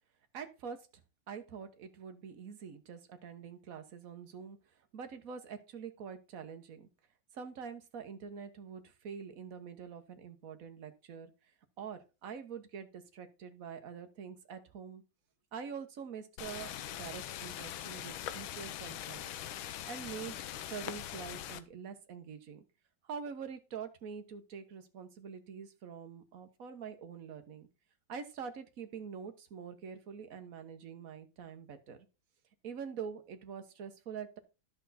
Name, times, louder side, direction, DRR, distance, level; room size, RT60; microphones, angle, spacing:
voice 1, 0.3-0.9 1.3-4.6 4.9-6.9 7.3-11.3 11.8-15.0 15.5-19.3 19.9-20.4 20.7-22.6 23.1-27.7 28.1-32.1 32.6-34.4, right 6 dB, 45° right, 7 dB, 1.4 m, -45 dB
sound 1, 16.4-21.6, left 11 dB, 75° left, 1.5 m, -42 dB
11.0 x 6.8 x 4.2 m, 0.29 s
omnidirectional pair, 2.3 m